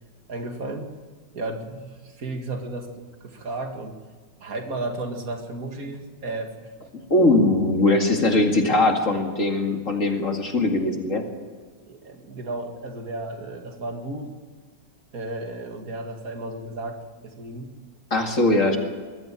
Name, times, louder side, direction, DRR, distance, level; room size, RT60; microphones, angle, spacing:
voice 1, 0.3-0.9 1.3-4.0 4.4-6.9 11.9-14.3 15.1-17.7, right 2 dB, 50° right, 4 dB, 2.6 m, -34 dB
voice 2, 7.1-11.2 18.1-18.8, left 2 dB, 45° left, 3 dB, 2.5 m, -20 dB
21.5 x 14.0 x 9.0 m, 1.5 s
omnidirectional pair, 1.9 m